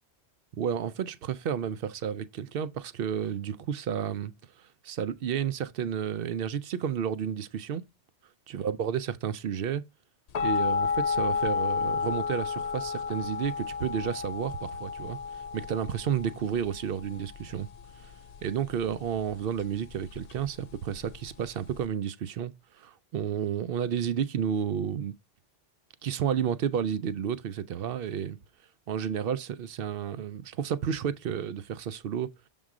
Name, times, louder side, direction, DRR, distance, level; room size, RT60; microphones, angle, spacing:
voice 1, 0.5-4.3 4.8-7.8 8.5-9.8 10.4-15.2 15.5-17.7 18.4-25.1 26.0-28.4 28.9-32.3, right 8 dB, 60° right, 0.7 m, -31 dB
sound 1, 10.3-21.9, left 5 dB, 70° left, 0.3 m, -32 dB
7.2 x 3.8 x 4.7 m
omnidirectional pair, 1.2 m